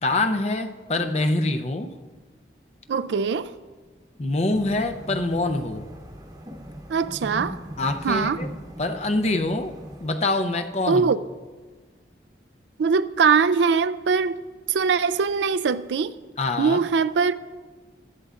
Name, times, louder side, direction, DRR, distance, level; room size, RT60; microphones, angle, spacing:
voice 1, 0.0-2.0 4.2-5.9 7.8-8.5 8.8-11.1 16.4-16.8, left 2 dB, 40° left, 0.6 m, -25 dB
voice 2, 2.9-3.5 6.9-7.6 8.0-8.4 10.9-11.2 12.8-14.4 14.7-16.1 16.6-17.3, right 5 dB, 85° right, 0.4 m, -22 dB
sound 1, 4.5-10.1, equal, 20° right, 0.9 m, -39 dB
16.0 x 12.5 x 2.5 m
head